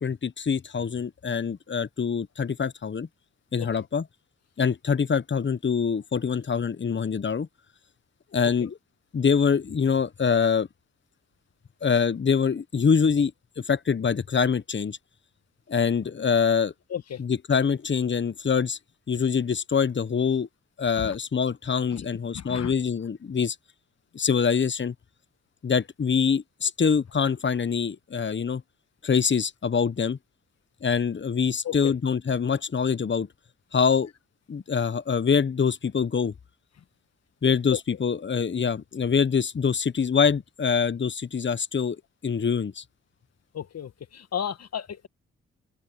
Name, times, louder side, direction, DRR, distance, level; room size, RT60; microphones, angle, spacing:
voice 1, 0.0-3.1 3.5-4.0 4.6-7.5 8.3-8.8 9.1-10.7 11.8-13.3 13.6-15.0 15.7-16.7 17.2-18.8 19.1-20.5 20.8-23.6 24.1-24.9 25.6-28.6 29.0-30.2 30.8-33.3 33.7-34.1 34.5-36.3 37.4-42.8, left 6 dB, 40° left, 1.3 m, -24 dB
voice 2, 16.9-17.2 21.0-21.1 21.9-22.1 22.3-22.7 31.6-31.9 37.7-37.8 43.5-45.1, left 9 dB, 60° left, 1.7 m, -34 dB
open air
hypercardioid pair, 45°, 29 cm